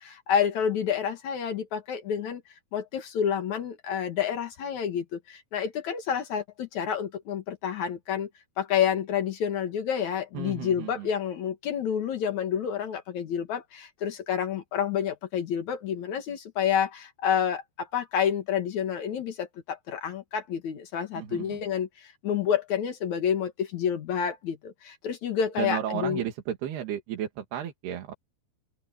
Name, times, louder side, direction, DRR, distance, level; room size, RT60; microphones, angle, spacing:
voice 1, 0.0-2.4 2.7-8.3 8.6-26.2, left 8 dB, 55° left, 2.4 m, -29 dB
voice 2, 10.3-11.1 21.1-21.6 25.6-28.1, right 10 dB, 75° right, 4.1 m, -33 dB
open air
omnidirectional pair, 4.7 m